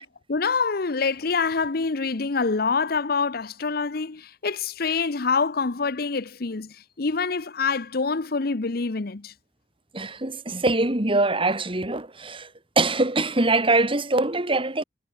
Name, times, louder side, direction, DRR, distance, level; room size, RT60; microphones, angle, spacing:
voice 1, 0.0-9.3, left 4 dB, 60° left, 0.9 m, -26 dB
voice 2, 9.9-12.5 12.8-14.8, right 2 dB, 30° right, 3.1 m, -23 dB
head